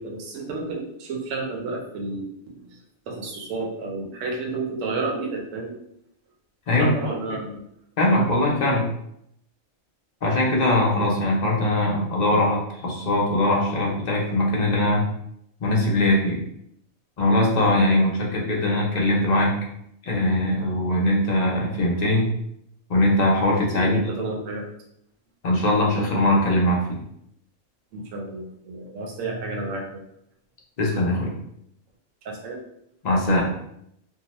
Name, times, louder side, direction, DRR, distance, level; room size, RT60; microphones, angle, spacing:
voice 1, 0.0-2.6 3.1-5.8 6.8-7.6 23.4-24.6 27.9-30.0 32.2-32.6, right 3 dB, 70° right, 1 dB, 1.0 m, -31 dB
voice 2, 8.0-8.9 10.2-15.1 15.6-16.4 17.2-19.5 20.0-22.3 22.9-24.0 25.4-27.0 30.8-31.3 33.0-33.5, left 1 dB, 55° left, -2 dB, 0.4 m, -21 dB
2.8 x 2.1 x 2.9 m, 0.74 s
omnidirectional pair, 1.5 m